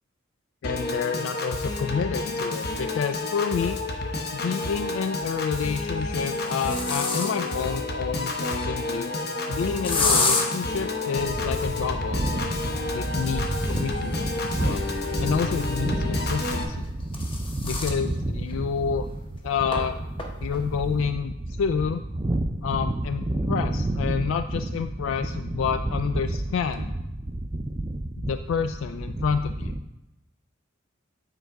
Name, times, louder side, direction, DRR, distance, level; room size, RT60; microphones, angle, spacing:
voice 1, 0.6-3.8 4.3-9.1 9.5-12.5 12.9-14.9 15.2-16.9 17.6-19.1 19.4-20.0 20.4-22.0 22.6-26.9 28.2-29.7, left 6 dB, 80° left, 9 dB, 0.3 m, -29 dB
Piano / Organ, 0.6-16.6, left 2 dB, 55° left, 0.9 m, -30 dB
sound 1, 3.5-3.6 5.0-5.4 6.0-7.6 9.8-10.5 13.0-15.7 16.7-18.0 18.5-18.6 18.9-19.0 19.7-19.8 20.2-20.6, left 3 dB, 25° left, 0.9 m, -29 dB
sound 2, 11.2-29.8, right 1 dB, 20° right, 0.4 m, -30 dB
9.0 x 3.9 x 4.6 m, 0.95 s
head